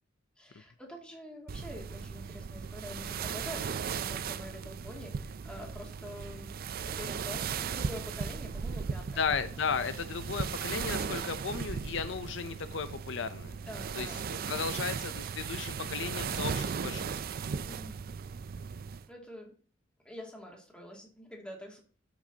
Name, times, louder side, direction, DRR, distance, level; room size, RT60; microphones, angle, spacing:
voice 1, 0.4-6.5 6.8-9.3 13.4-14.2 17.6-17.9 19.1-19.5 20.0-21.8, equal, 5° left, -1 dB, 2.3 m, -46 dB
sound 1, 1.5-19.1, right 6 dB, 50° right, 0.4 m, -37 dB
voice 2, 9.2-13.5 14.0-17.1, left 6 dB, 70° left, 11 dB, 0.6 m, -35 dB
13.0 x 6.0 x 2.8 m, 0.42 s
head